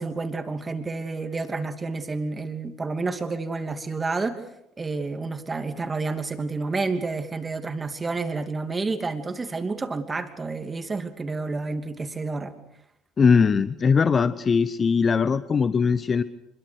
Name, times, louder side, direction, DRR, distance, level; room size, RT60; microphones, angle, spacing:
voice 1, 0.0-4.4 4.8-12.5, right 3 dB, 20° right, 7 dB, 2.8 m, -29 dB
voice 2, 13.2-16.2, left 5 dB, 30° left, 14 dB, 0.9 m, -20 dB
26.0 x 22.5 x 6.5 m, 0.81 s
figure-of-eight pair, 60°, 0 cm